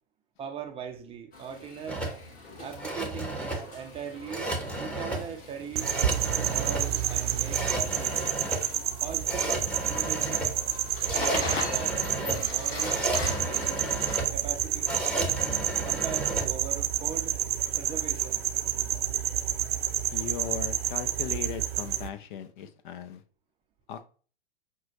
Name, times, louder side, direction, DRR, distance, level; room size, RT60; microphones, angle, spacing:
voice 1, 0.4-2.0 2.6-5.9 6.4-8.4 9.0-10.6 11.1-15.4 15.8-17.3 17.8-18.5, right 7 dB, 20° right, 5 dB, 0.5 m, -40 dB
sound 1, 1.3-14.2, left 3 dB, 30° left, 1.5 m, -41 dB
sound 2, 1.9-16.5, right 2 dB, 5° left, 0.9 m, -33 dB
sound 3, 5.8-22.1, right 11 dB, 75° right, 0.5 m, -29 dB
voice 2, 20.1-23.2 23.9-24.1, left 8 dB, 55° left, 11 dB, 0.5 m, -37 dB
5.9 x 2.2 x 2.9 m, 0.40 s
hypercardioid pair, 105°, 31 cm